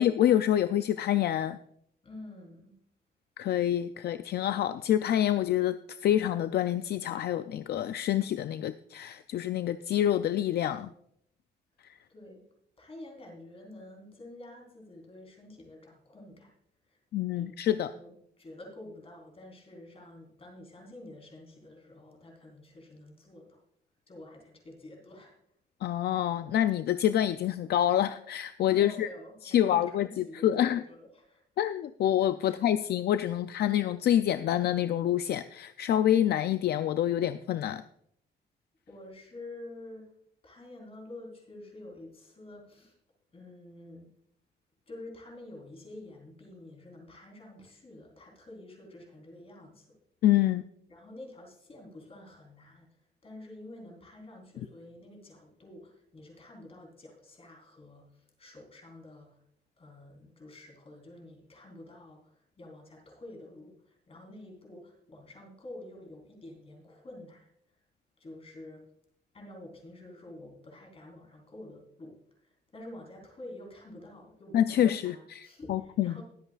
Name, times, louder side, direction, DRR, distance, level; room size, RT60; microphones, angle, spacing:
voice 1, 0.0-1.6 3.4-10.9 17.1-17.9 25.8-29.1 29.4-30.8 31.6-37.8 50.2-50.6 74.5-76.2, left 11 dB, 65° left, 11 dB, 0.4 m, -27 dB
voice 2, 2.0-2.7 12.1-12.4 12.8-16.5 16.9-17.0 17.3-17.5 17.8-23.6 24.1-25.4 28.6-31.4 32.4-32.6 38.9-40.0 40.4-42.9 43.3-44.1 44.9-49.9 50.9-59.4 59.8-67.5 68.2-68.8 69.3-76.2, left 1 dB, 35° left, 1 dB, 3.7 m, -48 dB
21.0 x 8.0 x 2.4 m, 0.71 s
cardioid pair, 115°, 18 cm